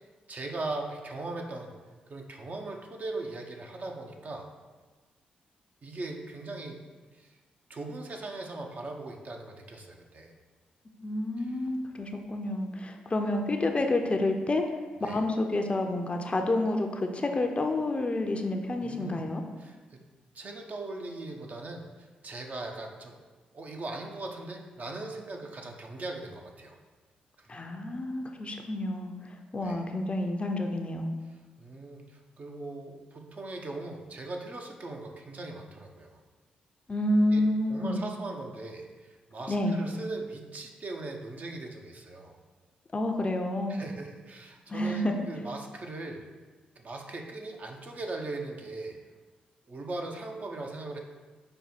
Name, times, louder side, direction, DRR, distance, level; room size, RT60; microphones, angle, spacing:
voice 1, 0.3-1.7 2.1-4.5 5.8-6.8 7.1-7.4 7.7-10.3 11.4-11.6 15.0-15.2 18.8-19.2 19.6-20.0 20.3-23.2 23.5-26.8 27.4-27.6 29.6-29.8 31.3-36.2 37.3-37.4 37.7-42.3 43.7-46.3 46.8-49.0 49.7-51.0, right 2 dB, 45° right, 2 dB, 0.6 m, -39 dB
voice 2, 11.0-14.6 15.0-19.4 27.5-29.1 29.5-31.1 36.9-38.0 39.5-39.8 42.9-43.8 44.7-45.1, left 1 dB, 35° left, 4 dB, 0.5 m, -29 dB
5.3 x 2.2 x 4.1 m, 1.3 s
hypercardioid pair, 45°, 4 cm